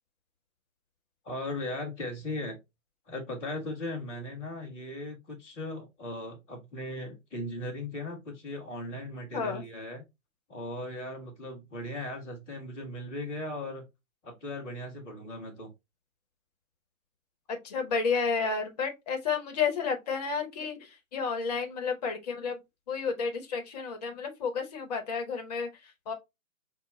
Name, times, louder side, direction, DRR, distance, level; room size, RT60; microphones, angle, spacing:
voice 1, 1.2-2.6 3.1-10.0 10.5-13.8 14.2-15.7, left 1 dB, 5° left, 0.5 m, -38 dB
voice 2, 17.5-22.6 22.9-25.7 26.1-26.2, left 5 dB, 30° left, 0.8 m, -31 dB
5.8 x 2.2 x 3.1 m
figure-of-eight pair, 130°, 41 cm